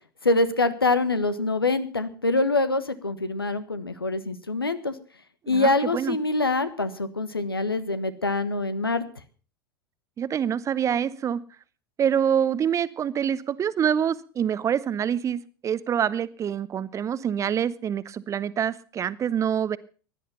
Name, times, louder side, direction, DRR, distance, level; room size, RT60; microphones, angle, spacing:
voice 1, 0.2-4.9 5.5-9.0, left 2 dB, 85° left, 12 dB, 1.2 m, -25 dB
voice 2, 5.5-6.2 10.2-11.4 12.0-19.8, right 8 dB, 25° right, 18 dB, 0.8 m, -26 dB
16.0 x 11.0 x 5.5 m, 0.39 s
figure-of-eight pair, 80°, 12 cm